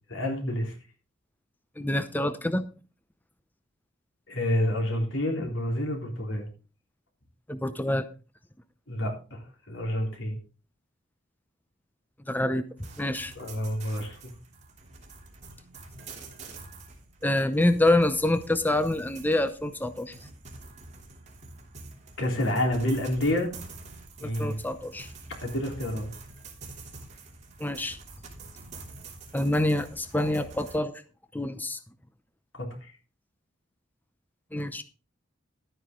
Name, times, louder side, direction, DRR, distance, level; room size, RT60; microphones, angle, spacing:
voice 1, 0.1-0.7 4.3-6.5 8.9-10.4 13.4-14.2 22.2-23.5 24.2-24.6 25.4-26.1 32.5-32.9, left 1 dB, 85° left, 1 dB, 3.7 m, -29 dB
voice 2, 1.8-2.6 7.5-8.0 12.3-12.6 13.0-13.3 17.2-20.1 24.2-25.1 27.6-28.0 29.3-30.9 31.3-31.8 34.5-34.8, left 1 dB, 10° left, 11 dB, 0.6 m, -26 dB
sound 1, 12.8-30.8, right 3 dB, 40° right, 3.1 m, -46 dB
12.5 x 9.5 x 3.7 m, 0.35 s
head